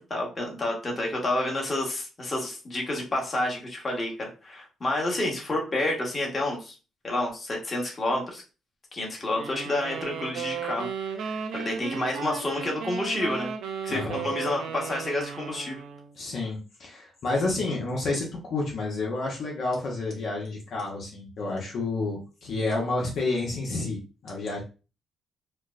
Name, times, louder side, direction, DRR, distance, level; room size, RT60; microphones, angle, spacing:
voice 1, 0.1-6.7 7.0-8.4 8.9-10.9 11.1-13.5 13.8-15.8, left 1 dB, 30° left, -1 dB, 1.2 m, -29 dB
sound 1, 9.3-16.2, right 6 dB, 85° right, 0.5 m, -35 dB
voice 2, 13.9-14.2 16.2-24.0 24.2-24.6, left 3 dB, 60° left, -1 dB, 0.8 m, -30 dB
4.3 x 2.1 x 2.4 m, 0.33 s
cardioid pair, 90°, 0 cm